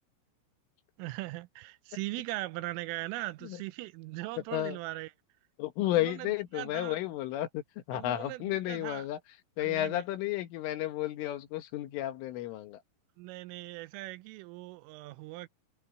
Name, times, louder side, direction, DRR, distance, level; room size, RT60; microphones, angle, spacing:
voice 1, 1.0-5.1 5.9-7.0 7.9-9.1 9.6-10.0 13.2-15.5, right 19 dB, 85° right, 3.3 m, -40 dB
voice 2, 5.6-9.2 9.6-12.8, left 14 dB, 80° left, 4.0 m, -32 dB
omnidirectional pair, 5.8 m